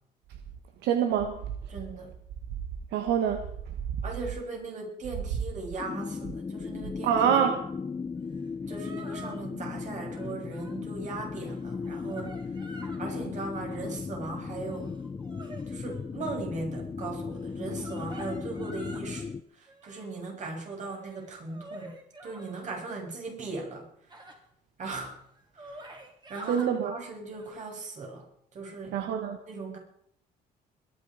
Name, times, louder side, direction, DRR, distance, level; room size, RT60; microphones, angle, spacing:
voice 1, 0.8-1.4 2.9-3.4 7.0-7.6 26.5-26.9 28.9-29.4, right 8 dB, 85° right, 5 dB, 1.6 m, -25 dB
voice 2, 1.7-2.1 4.0-7.1 8.7-12.3 13.0-14.9 15.7-21.9 22.2-23.9 24.8-25.2 25.5-26.0 26.3-28.3 28.5-29.1 29.5-29.8, right 3 dB, 45° right, 1 dB, 6.4 m, -38 dB
sound 1, 5.8-19.4, left 5 dB, 20° left, 0.6 m, -36 dB
sound 2, 8.4-8.5 8.7-9.4 10.1-10.8 11.3-13.1 13.5-14.0 14.7-16.1 17.5-19.2 19.7-20.2 20.9-22.6 24.1-24.3 25.0-25.1 25.4-26.7 27.3-27.5, right 1 dB, 25° right, 3.6 m, -47 dB
21.5 x 10.5 x 5.1 m, 0.70 s
cardioid pair, 110°, 17 cm